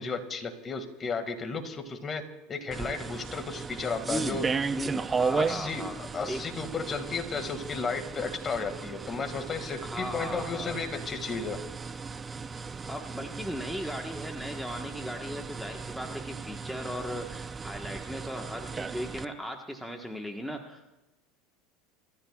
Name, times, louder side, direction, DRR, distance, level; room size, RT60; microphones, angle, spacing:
voice 1, 0.0-2.2 2.5-4.4 5.4-11.6, left 4 dB, 30° left, 7 dB, 2.0 m, -34 dB
sound 1, 2.7-19.2, right 5 dB, 20° right, 0.6 m, -36 dB
voice 2, 4.0-4.4 4.7-6.0 6.3-6.4 9.8-10.8 12.9-20.9, equal, ahead, 3 dB, 1.3 m, -37 dB
26.5 x 14.0 x 2.4 m, 1.0 s
supercardioid pair, 105°, 0 cm